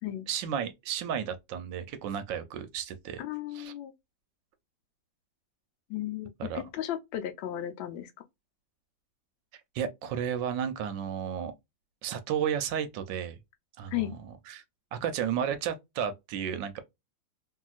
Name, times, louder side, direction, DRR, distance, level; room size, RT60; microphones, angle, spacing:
voice 1, 0.3-3.2 3.5-3.7 6.4-6.6 9.7-11.5 12.0-13.4 13.8-14.1 14.5-14.6 14.9-16.8, right 8 dB, 75° right, 1.2 m, -33 dB
voice 2, 3.2-3.9 5.9-8.1 13.9-14.1, left 13 dB, 75° left, 1.3 m, -34 dB
3.0 x 2.7 x 2.3 m
omnidirectional pair, 2.2 m